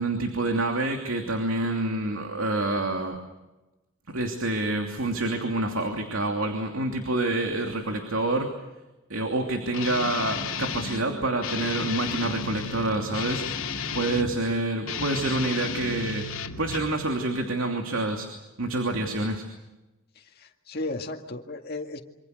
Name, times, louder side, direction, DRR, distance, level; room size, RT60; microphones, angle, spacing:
voice 1, 0.0-3.2 4.1-8.5 9.1-13.5 13.9-18.3 18.6-19.4, right 2 dB, 70° right, 3 dB, 2.9 m, -27 dB
Guitar, 9.7-11.0 11.4-14.4 14.8-17.0, left 5 dB, 70° left, 2.5 m, -33 dB
voice 2, 20.2-22.0, left 2 dB, 45° left, 3 dB, 2.1 m, -35 dB
26.5 x 25.5 x 6.6 m, 1.0 s
head